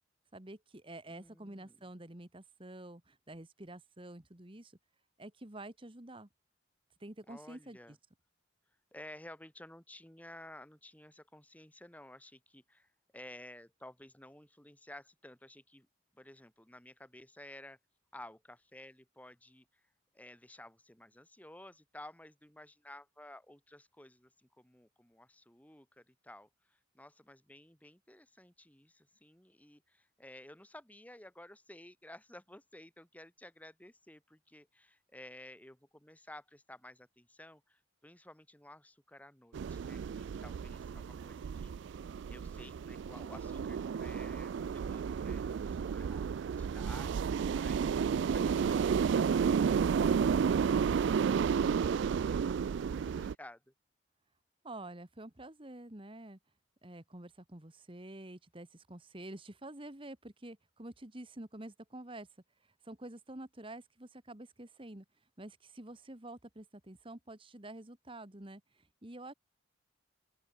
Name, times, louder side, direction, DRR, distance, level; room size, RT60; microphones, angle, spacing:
voice 1, 0.3-4.8 5.2-6.3 7.0-8.0 54.6-56.4 56.8-62.3 62.8-65.0 65.4-69.3, right 1 dB, 25° right, 1.6 m, -48 dB
voice 2, 1.1-1.8 7.3-8.0 8.9-15.9 16.1-17.8 18.1-19.8 20.1-42.0 42.3-47.1 47.5-53.7, left 1 dB, 5° left, 2.1 m, -54 dB
sound 1, 39.5-53.3, right 6 dB, 60° right, 0.3 m, -32 dB
open air
head